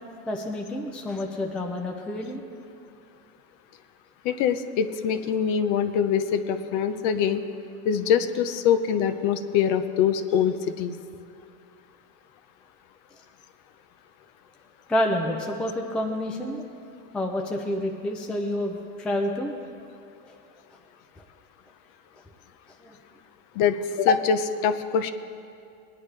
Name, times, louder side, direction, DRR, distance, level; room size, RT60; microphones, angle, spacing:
voice 1, 0.3-2.4 14.9-16.7 17.1-19.5 20.2-20.4 22.8-23.0, left 1 dB, 5° left, 2 dB, 0.3 m, -28 dB
voice 2, 4.2-7.4 7.8-11.0 23.6-25.1, left 7 dB, 50° left, 10 dB, 0.7 m, -24 dB
20.5 x 10.0 x 3.3 m, 2.5 s
supercardioid pair, 155°, 41 cm